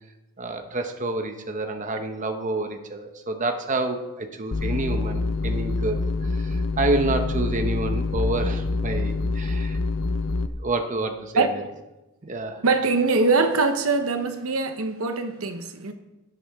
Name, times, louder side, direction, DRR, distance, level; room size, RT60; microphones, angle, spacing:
voice 1, 0.4-9.8 10.6-11.5 12.2-12.6, right 2 dB, 35° right, 0.9 m, -28 dB
sound 1, 4.5-10.5, left 3 dB, 65° left, 0.6 m, -26 dB
voice 2, 12.6-15.9, right 3 dB, 70° right, 0.9 m, -22 dB
17.0 x 8.4 x 3.6 m
head